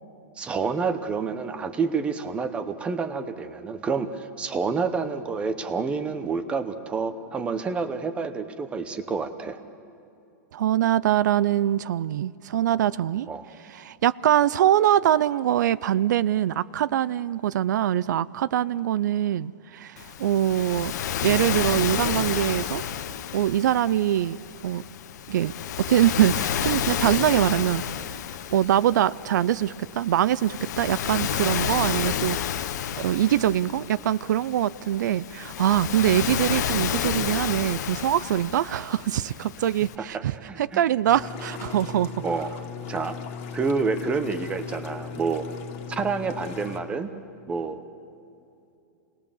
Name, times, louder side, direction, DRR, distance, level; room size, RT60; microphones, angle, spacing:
voice 1, 0.4-9.6 13.3-13.5 40.0-40.8 42.2-42.5 42.9-43.2 43.5-45.5 45.9-47.1 47.5-47.8, right 5 dB, 10° right, 0.8 m, -28 dB
voice 2, 10.5-13.3 13.6-20.9 21.2-22.8 23.3-24.8 25.3-25.5 25.8-27.8 28.5-32.7 33.0-42.2, right 11 dB, 80° right, 0.5 m, -23 dB
Waves surf, 20.0-40.0, left 9 dB, 70° left, 1.0 m, -31 dB
sound 1, 41.0-46.8, left 7 dB, 45° left, 2.1 m, -38 dB
28.0 x 19.5 x 7.1 m
supercardioid pair, 170°, 10 cm